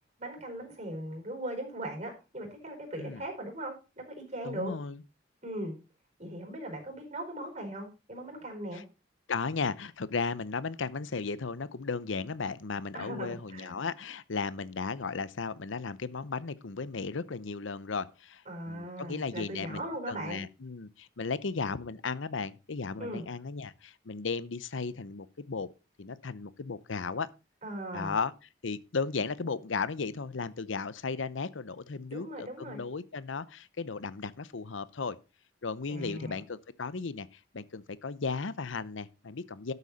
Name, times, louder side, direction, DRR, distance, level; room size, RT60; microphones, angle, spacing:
voice 1, 0.2-4.7 5.4-5.7 6.2-8.8 12.9-13.7 18.5-20.4 23.0-23.2 27.6-28.1 32.1-32.8 35.9-36.4, right 1 dB, 40° right, 4.7 m, -39 dB
voice 2, 4.4-5.0 8.7-8.8 9.3-18.4 18.7-25.7 26.0-27.3 27.9-28.3 28.6-35.2 35.6-39.7, left 4 dB, 85° left, 0.8 m, -35 dB
12.5 x 8.2 x 4.1 m
head